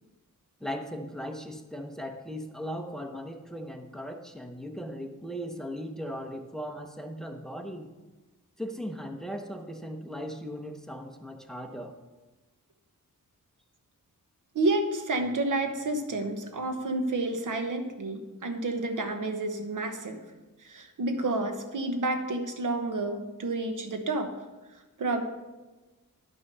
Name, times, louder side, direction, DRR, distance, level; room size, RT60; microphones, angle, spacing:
voice 1, 0.6-7.9 8.6-12.0, equal, ahead, 4 dB, 0.8 m, -38 dB
voice 2, 14.5-20.3 20.6-24.3 25.0-25.2, right 2 dB, 65° right, 6 dB, 1.1 m, -30 dB
11.0 x 6.2 x 5.4 m, 1.2 s
wide cardioid pair, 165°, 33 cm